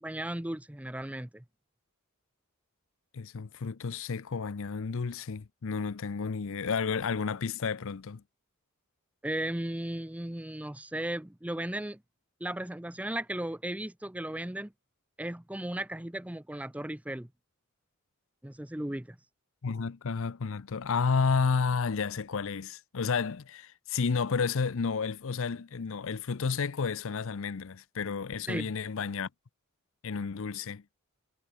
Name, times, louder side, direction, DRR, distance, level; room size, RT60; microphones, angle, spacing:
voice 1, 0.0-1.4 9.2-12.0 12.4-14.7 15.2-17.3 18.4-19.2 28.5-28.7, right 1 dB, 5° right, 0.6 m, -36 dB
voice 2, 3.1-8.2 19.6-29.3 30.0-30.8, left 5 dB, 65° left, 0.6 m, -31 dB
head